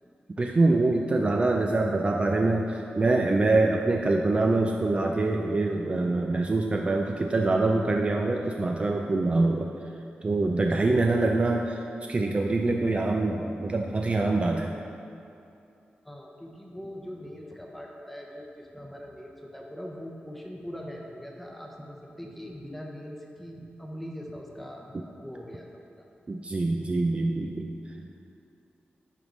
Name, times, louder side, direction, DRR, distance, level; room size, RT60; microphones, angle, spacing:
voice 1, 0.4-9.7 10.2-11.8 12.1-14.7 26.3-28.2, right 2 dB, 30° right, 1 dB, 0.3 m, -25 dB
voice 2, 16.0-26.1 26.8-26.9, equal, 5° left, -1 dB, 0.8 m, -42 dB
9.8 x 3.5 x 3.9 m, 2.6 s
wide cardioid pair, 105°, 4 cm